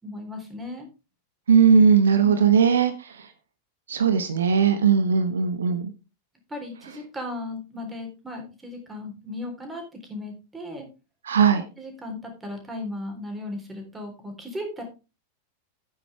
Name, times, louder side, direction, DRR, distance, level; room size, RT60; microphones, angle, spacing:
voice 1, 0.0-0.9 2.2-2.5 6.5-10.9 11.5-14.8, left 2 dB, 10° right, 3 dB, 3.8 m, -36 dB
voice 2, 1.5-3.3 3.9-5.9 11.2-11.6, right 6 dB, 65° right, 10 dB, 1.0 m, -19 dB
11.0 x 9.4 x 3.4 m, 0.30 s
figure-of-eight pair, 90°, 0 cm